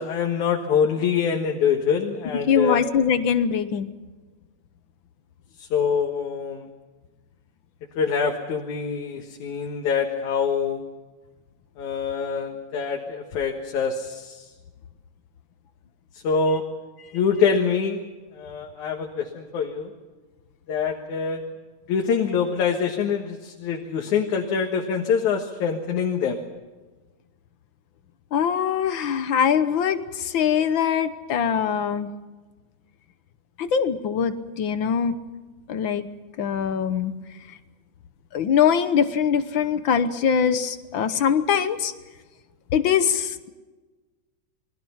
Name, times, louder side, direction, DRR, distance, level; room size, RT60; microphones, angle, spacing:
voice 1, 0.0-2.8 5.6-6.7 8.0-10.8 11.8-14.5 16.2-16.6 17.1-18.0 18.3-19.9 20.7-21.4 21.9-26.4, left 6 dB, 90° left, 1 dB, 3.0 m, -25 dB
voice 2, 2.5-3.9 28.3-32.1 33.6-35.2 35.7-36.1 36.4-37.1 38.3-41.9 42.7-43.5, left 7 dB, 60° left, 11 dB, 1.3 m, -22 dB
28.0 x 21.0 x 5.8 m, 1.3 s
omnidirectional pair, 3.3 m